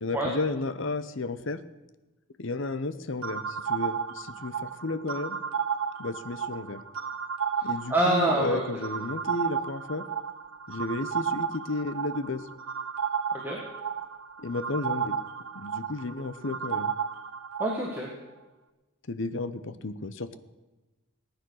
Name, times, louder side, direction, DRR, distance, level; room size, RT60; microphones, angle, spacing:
voice 1, 0.0-1.6 2.4-5.4 6.0-6.8 7.6-10.0 10.7-12.4 14.4-15.2 15.5-16.9 19.1-20.4, left 2 dB, 60° left, 13 dB, 0.9 m, -33 dB
sound 1, 3.2-18.0, right 7 dB, 75° right, 0.8 m, -33 dB
voice 2, 7.9-8.6 13.4-13.6 17.6-18.1, right 1 dB, 10° right, -2 dB, 1.7 m, -25 dB
18.5 x 9.6 x 6.4 m, 1.1 s
head